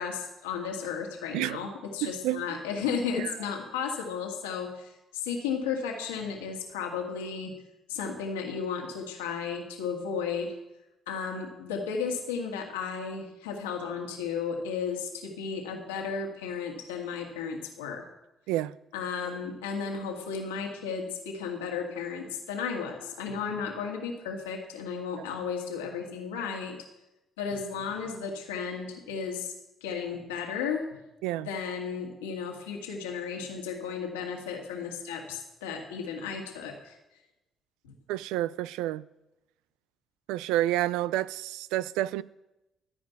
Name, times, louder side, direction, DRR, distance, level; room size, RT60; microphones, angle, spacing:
voice 1, 0.0-7.6 7.9-10.5 11.1-18.0 18.9-26.8 27.4-29.5 29.8-30.9 31.4-36.9 37.8-37.9, left 6 dB, 90° left, 2.0 m, -34 dB
voice 2, 2.0-2.6 3.2-3.4 18.5-18.8 31.2-31.5 38.1-39.1 40.3-42.2, right 15 dB, 80° right, 0.3 m, -29 dB
14.5 x 5.2 x 9.4 m
hypercardioid pair, 50°, 0 cm